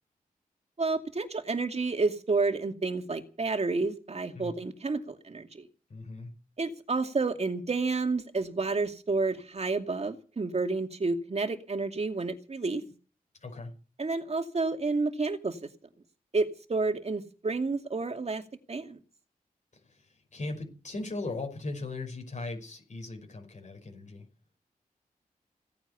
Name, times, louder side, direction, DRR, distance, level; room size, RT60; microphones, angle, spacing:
voice 1, 0.8-5.7 6.6-12.8 14.0-15.6 16.3-18.4 18.7-19.0, right 3 dB, 45° right, 6 dB, 2.5 m, -30 dB
voice 2, 5.9-6.3 12.8-12.9 13.4-13.7 19.7-24.3, left 2 dB, 55° left, 2 dB, 5.6 m, -38 dB
17.5 x 9.5 x 8.5 m, 0.37 s
cardioid pair, 75°, 15 cm